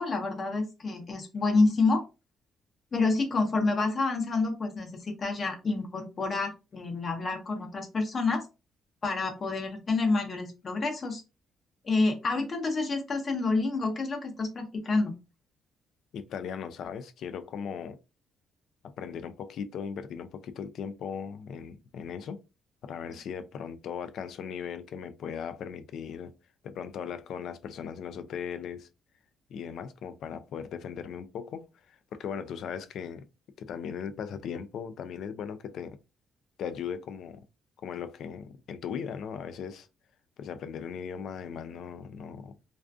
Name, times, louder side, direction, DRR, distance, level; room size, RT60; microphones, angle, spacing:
voice 1, 0.0-2.0 2.9-8.5 9.0-11.2 11.8-15.1, left 3 dB, 35° left, 0.7 m, -28 dB
voice 2, 16.1-18.0 19.0-22.4 22.8-26.3 26.6-28.9 29.5-33.2 33.6-36.0 36.6-37.4 37.8-39.9 40.4-42.5, left 7 dB, 70° left, 0.3 m, -38 dB
2.4 x 2.4 x 2.3 m
cardioid pair, 130°, 0 cm